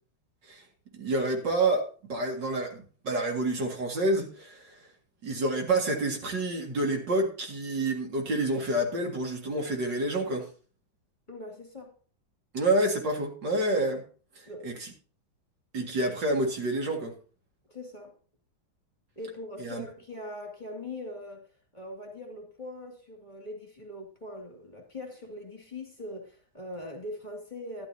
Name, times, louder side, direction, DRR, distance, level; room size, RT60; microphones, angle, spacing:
voice 1, 0.9-4.8 5.2-10.5 12.5-14.0 14.4-14.9 15.7-17.1 19.6-19.8, right 2 dB, 60° right, 2.8 m, -28 dB
voice 2, 11.3-11.9 14.5-14.7 17.7-18.1 19.2-21.5 21.7-27.9, left 1 dB, 20° left, 2.5 m, -41 dB
12.5 x 12.0 x 2.8 m
omnidirectional pair, 2.2 m